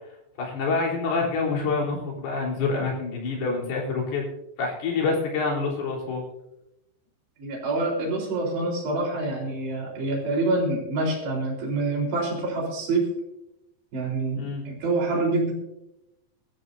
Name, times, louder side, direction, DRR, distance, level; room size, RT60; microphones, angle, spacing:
voice 1, 0.4-4.2 4.6-6.2 14.4-14.6, left 4 dB, 60° left, -2 dB, 5.6 m, -27 dB
voice 2, 7.4-13.1 13.9-15.5, right 2 dB, 65° right, -2 dB, 6.0 m, -26 dB
23.0 x 14.0 x 2.7 m, 0.87 s
omnidirectional pair, 5.3 m